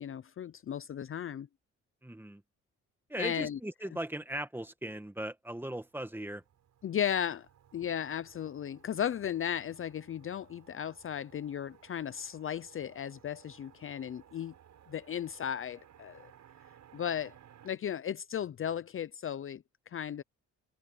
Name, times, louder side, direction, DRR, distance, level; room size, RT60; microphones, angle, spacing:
voice 1, 0.0-1.5 3.2-3.6 3.9-4.0 6.8-7.5 7.7-14.5 14.9-16.3 16.9-17.3 17.6-19.6 19.9-20.2, left 9 dB, 45° left, 0.7 m, -35 dB
voice 2, 2.0-2.4 3.1-6.4, right 1 dB, 5° right, 1.9 m, -38 dB
Motor vehicle (road), 5.8-17.7, right 10 dB, 65° right, 7.9 m, -60 dB
cardioid pair, 90°, 30 cm